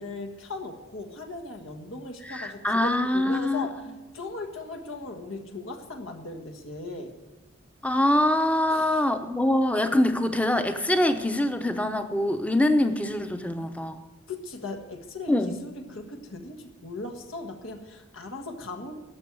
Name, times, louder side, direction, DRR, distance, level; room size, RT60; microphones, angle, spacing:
voice 1, 0.0-3.8 4.1-7.1 8.7-9.1 14.3-19.0, left 2 dB, 85° left, 2 dB, 1.5 m, -38 dB
voice 2, 2.3-3.7 7.8-14.0 15.3-15.6, left 1 dB, 5° left, 8 dB, 0.7 m, -24 dB
12.5 x 6.2 x 9.4 m, 1.2 s
head